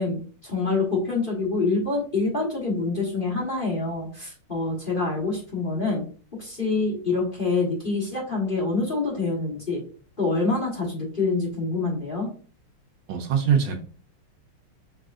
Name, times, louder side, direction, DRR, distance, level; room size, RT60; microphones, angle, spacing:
voice 1, 0.0-6.0 6.3-9.8 10.2-12.3, left 3 dB, 30° left, -3 dB, 1.3 m, -26 dB
voice 2, 13.1-13.8, right 7 dB, 75° right, 5 dB, 1.5 m, -22 dB
5.5 x 3.8 x 2.5 m, 0.40 s
omnidirectional pair, 2.3 m